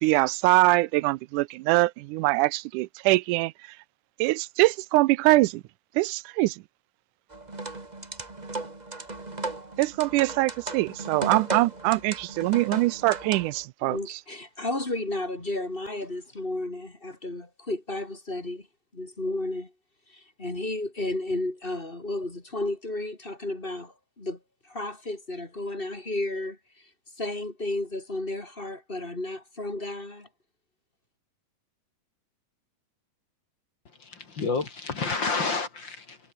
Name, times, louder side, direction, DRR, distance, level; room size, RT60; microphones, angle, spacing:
voice 1, 0.0-3.8 4.2-5.6 6.0-6.6 9.8-14.2, right 20 dB, 90° right, 2.1 m, -23 dB
sound 1, 7.3-13.6, right 2 dB, 15° right, 1.9 m, -36 dB
voice 2, 13.8-18.7 18.9-19.7 20.1-24.4 24.6-26.6 27.2-30.3, left 2 dB, 20° left, 2.9 m, -33 dB
voice 3, 34.0-36.2, left 4 dB, 40° left, 2.9 m, -29 dB
omnidirectional pair, 3.5 m